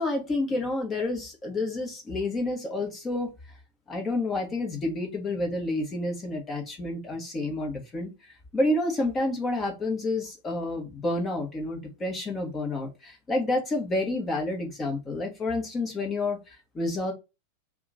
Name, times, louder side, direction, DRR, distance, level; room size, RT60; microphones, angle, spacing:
voice 1, 0.0-3.3 3.9-8.1 8.5-17.1, left 2 dB, 20° left, 2 dB, 1.1 m, -29 dB
2.8 x 2.3 x 3.8 m, 0.25 s
figure-of-eight pair, 90°, 0 cm